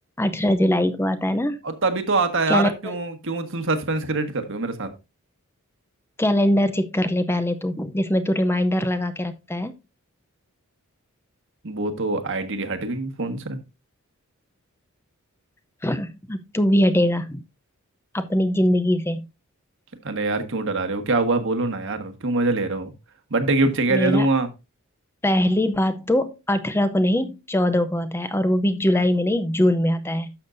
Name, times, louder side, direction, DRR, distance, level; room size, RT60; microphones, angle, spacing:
voice 1, 0.2-1.6 2.5-2.7 6.2-9.7 15.8-17.4 18.1-19.3 23.9-24.3 25.2-30.3, left 1 dB, 10° left, 10 dB, 0.6 m, -22 dB
voice 2, 1.6-4.9 11.6-13.6 20.0-22.9 23.3-24.5, right 3 dB, 65° right, 8 dB, 1.5 m, -24 dB
12.0 x 7.0 x 2.6 m, 0.26 s
head